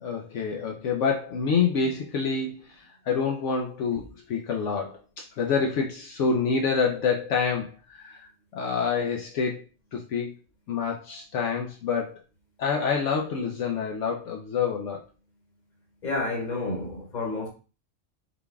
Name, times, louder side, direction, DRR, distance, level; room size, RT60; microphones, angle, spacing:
voice 1, 0.0-5.0 5.4-8.2 8.5-9.6 9.9-10.3 10.7-12.2 12.6-15.0, left 5 dB, 75° left, 1.0 m, -27 dB
voice 2, 16.0-17.5, left 2 dB, 35° left, 1.3 m, -30 dB
4.0 x 3.5 x 3.4 m
omnidirectional pair, 1.3 m